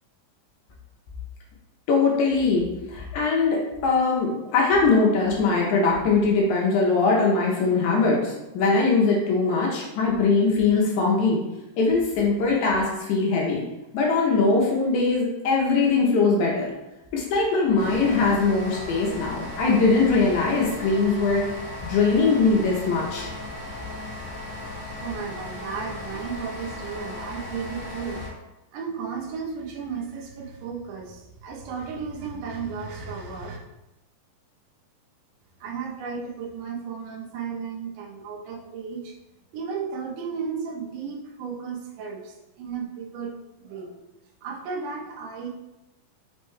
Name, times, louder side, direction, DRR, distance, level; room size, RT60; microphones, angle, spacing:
voice 1, 1.9-11.4 11.8-13.6 13.9-16.7 17.1-23.3, left 4 dB, 80° left, -2 dB, 1.7 m, -21 dB
sound 1, 17.8-28.3, left 1 dB, 55° left, 1.0 m, -36 dB
voice 2, 25.0-28.2 28.7-33.6 35.6-39.1 39.5-43.3 43.6-43.9 44.4-45.5, right 5 dB, 75° right, 0 dB, 2.0 m, -34 dB
5.4 x 2.1 x 3.1 m, 0.96 s
omnidirectional pair, 4.0 m